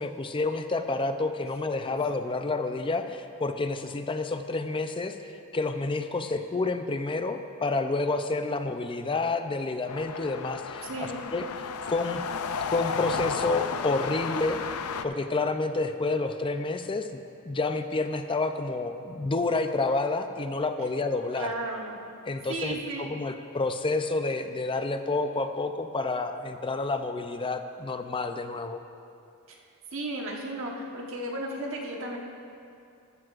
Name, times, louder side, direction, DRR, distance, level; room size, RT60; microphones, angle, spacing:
voice 1, 0.0-11.5 11.9-12.2 12.7-14.6 15.0-17.2 17.5-21.5 22.3-28.8, left 3 dB, 25° left, 8 dB, 0.5 m, -29 dB
sound 1, 9.9-15.0, left 6 dB, 85° left, 0.5 m, -33 dB
voice 2, 10.9-11.2 21.3-22.0 22.5-23.2 29.5-29.6 29.9-32.2, right 1 dB, 65° right, 0 dB, 1.3 m, -34 dB
14.0 x 12.5 x 2.5 m, 2.5 s
head